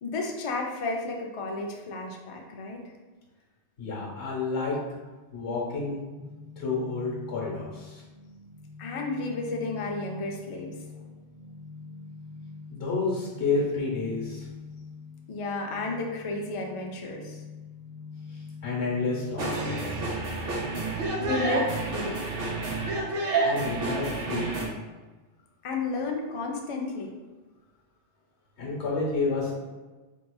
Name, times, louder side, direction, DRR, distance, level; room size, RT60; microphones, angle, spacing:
voice 1, 0.0-2.8 8.8-10.8 15.3-17.4 21.2-22.2 25.6-27.1, left 3 dB, 60° left, 1 dB, 0.3 m, -32 dB
voice 2, 3.8-4.8 5.3-6.0 6.6-8.0 12.7-14.5 18.6-20.2 23.4-24.7 28.6-29.6, left 3 dB, 80° left, -4 dB, 1.3 m, -30 dB
sound 1, 6.0-20.7, left 4 dB, 15° right, 1.0 m, -45 dB
sound 2, 19.4-24.7, right 3 dB, 60° right, 0.8 m, -29 dB
3.8 x 2.8 x 2.2 m, 1.2 s
omnidirectional pair, 1.1 m